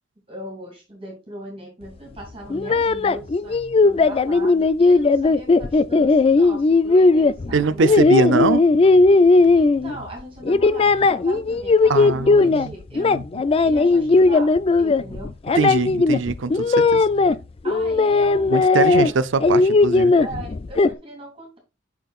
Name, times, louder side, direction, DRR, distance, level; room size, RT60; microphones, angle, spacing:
voice 1, 0.3-8.3 9.5-13.2 13.6-15.4 17.6-19.2 20.2-21.6, right 1 dB, 30° right, 2.5 m, -39 dB
sound 1, 2.5-10.1 10.4-12.7 12.9-17.4 17.7-19.1 19.4-20.9, left 3 dB, 30° left, 0.3 m, -17 dB
voice 2, 7.5-8.6 11.9-12.7 13.1-13.4 15.5-17.0 18.5-20.1, right 4 dB, 75° right, 0.5 m, -22 dB
9.1 x 5.9 x 2.4 m
head